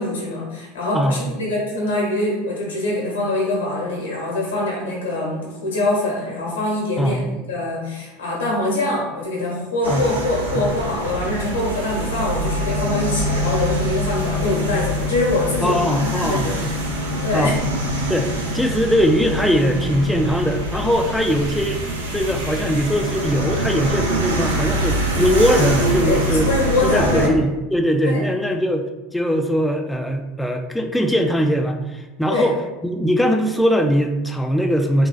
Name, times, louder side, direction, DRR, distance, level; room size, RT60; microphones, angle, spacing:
voice 1, 0.0-16.6 17.0-17.6 21.1-21.2 26.0-26.2 26.4-27.3 28.0-28.2 32.3-32.5, left 2 dB, 90° left, -4 dB, 1.2 m, -24 dB
sound 1, 9.8-27.3, right 1 dB, 90° right, 0.5 m, -25 dB
sound 2, 12.4-20.3, left 7 dB, 70° right, 1.4 m, -29 dB
voice 2, 15.6-16.5 17.3-17.6 18.1-26.5 26.8-28.9 29.1-32.6 32.8-35.1, equal, 5° left, 3 dB, 0.3 m, -20 dB
3.9 x 2.3 x 2.4 m, 1.1 s
hypercardioid pair, 80°, 0 cm